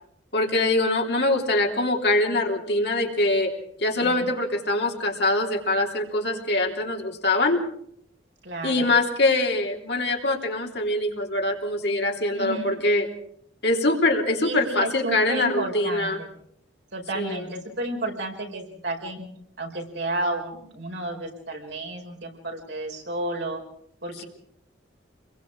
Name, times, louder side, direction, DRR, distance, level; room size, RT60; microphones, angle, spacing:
voice 1, 0.3-3.5 3.8-7.6 8.6-13.1 13.6-16.2 17.1-17.5, left 2 dB, 60° left, 1 dB, 3.4 m, -23 dB
voice 2, 4.0-4.3 8.4-8.9 12.3-12.7 14.4-16.3 16.9-19.3 19.6-23.6 24.0-24.3, right 2 dB, 65° right, 2 dB, 5.1 m, -32 dB
28.0 x 22.0 x 4.8 m, 0.68 s
head